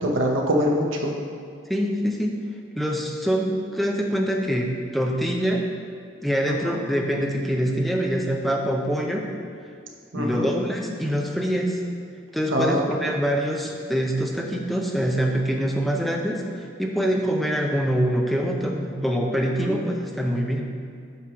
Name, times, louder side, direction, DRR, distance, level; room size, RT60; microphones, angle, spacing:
voice 1, 0.0-1.1 6.4-6.8 10.1-10.5 12.5-12.8 19.6-19.8, equal, 75° right, 1 dB, 0.9 m, -24 dB
voice 2, 1.7-2.4 2.8-5.7 6.2-9.3 10.1-11.8 12.3-20.7, equal, ahead, 0 dB, 0.5 m, -25 dB
7.9 x 3.0 x 6.0 m, 2.3 s
head